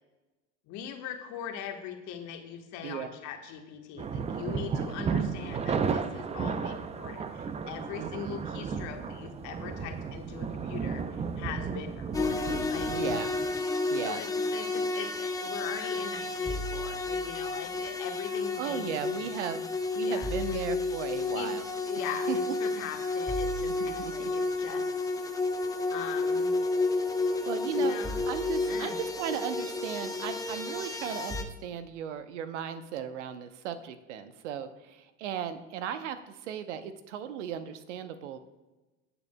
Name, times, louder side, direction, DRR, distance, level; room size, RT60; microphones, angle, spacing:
voice 1, 0.7-12.9 14.0-19.0 20.0-20.6 21.3-21.5 21.9-25.3 25.9-26.5 27.8-28.1 28.7-29.0, left 9 dB, 50° left, 5 dB, 1.3 m, -41 dB
sound 1, 4.0-13.6, right 5 dB, 15° right, 0.5 m, -34 dB
voice 2, 7.9-8.5 12.9-13.3 13.9-14.2 18.6-19.6 20.0-21.6 22.0-22.5 23.7-24.3 27.5-28.0 28.3-38.4, right 9 dB, 70° right, 11 dB, 0.9 m, -36 dB
sound 2, 12.1-31.4, left 3 dB, 10° left, 0.8 m, -31 dB
17.5 x 7.0 x 2.2 m, 1.1 s
hypercardioid pair, 85°, 37 cm